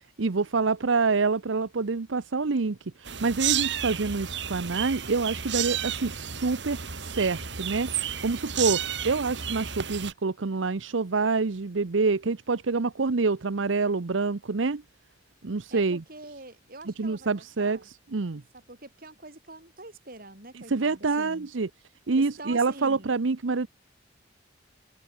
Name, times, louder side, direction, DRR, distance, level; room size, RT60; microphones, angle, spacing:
voice 1, 0.2-14.8 15.4-16.0 17.0-17.8 18.1-18.4 20.7-21.7 22.1-23.7, right 4 dB, 90° right, 0.8 m, -27 dB
sound 1, 3.1-10.1, right 9 dB, 65° right, 3.1 m, -32 dB
voice 2, 15.7-17.9 18.5-21.5 22.2-23.1, right 2 dB, 50° right, 5.8 m, -45 dB
open air
head